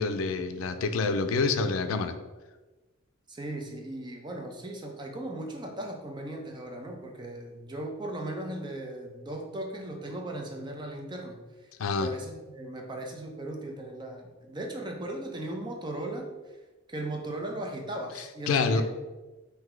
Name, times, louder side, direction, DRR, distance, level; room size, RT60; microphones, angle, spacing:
voice 1, 0.0-2.2 11.8-12.1 18.5-18.8, left 4 dB, 85° left, 9 dB, 0.4 m, -27 dB
voice 2, 3.3-11.4 12.0-16.3 16.9-18.8, right 1 dB, 20° right, 2 dB, 0.6 m, -37 dB
3.9 x 2.7 x 4.4 m, 1.2 s
head